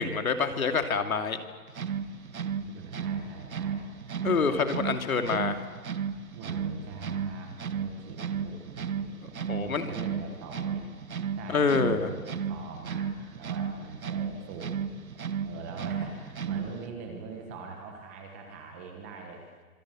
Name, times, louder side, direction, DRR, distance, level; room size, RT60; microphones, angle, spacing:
voice 1, 0.0-1.4 4.2-5.6 9.5-9.9 11.5-12.1, left 5 dB, 65° left, 6 dB, 2.8 m, -26 dB
sound 1, 1.7-16.9, right 6 dB, 65° right, 1.8 m, -34 dB
voice 2, 2.5-3.9 4.2-4.6 6.3-10.9 11.4-14.8 15.4-19.5, right 5 dB, 10° right, 2 dB, 1.1 m, -42 dB
26.5 x 26.0 x 7.6 m, 1.5 s
hypercardioid pair, 170°, 45 cm